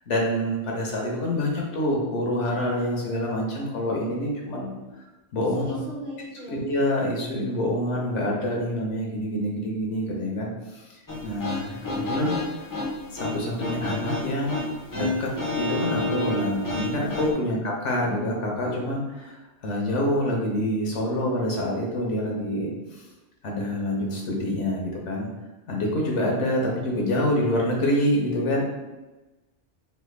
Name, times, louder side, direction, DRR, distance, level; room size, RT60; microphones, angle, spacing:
voice 1, 0.0-4.8 5.3-5.6 6.5-12.4 13.1-15.3 15.6-19.4 19.6-23.0 23.4-25.3 25.7-28.6, left 1 dB, 75° left, -2 dB, 1.0 m, -26 dB
voice 2, 5.5-6.6, left 1 dB, 45° right, -5 dB, 1.0 m, -38 dB
sound 1, 11.1-17.3, left 2 dB, 30° left, 0.4 m, -30 dB
3.2 x 2.1 x 3.1 m, 1.1 s
omnidirectional pair, 1.2 m